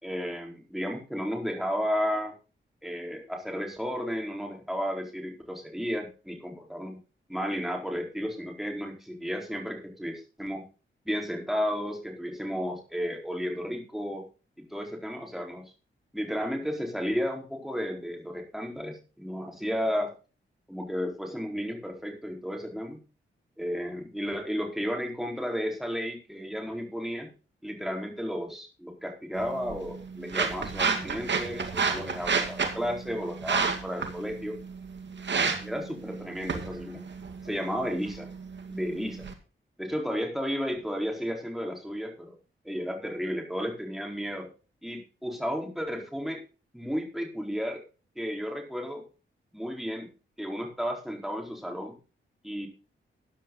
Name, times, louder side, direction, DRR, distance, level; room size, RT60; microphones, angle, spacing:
voice 1, 0.0-2.3 2.8-7.0 7.3-10.6 11.0-14.2 14.7-15.6 16.1-20.1 20.7-23.0 23.6-27.3 27.6-34.6 35.6-37.0 37.4-38.3 38.7-39.3 39.8-42.3 42.6-44.5 44.8-46.4 46.7-47.8 48.2-49.0 49.5-50.1 50.4-52.0 52.4-52.7, equal, ahead, 1 dB, 4.3 m, -33 dB
sound 1, 29.3-39.3, right 5 dB, 60° right, 2.2 m, -31 dB
14.0 x 9.9 x 4.0 m, 0.34 s
wide cardioid pair, 100°, 21 cm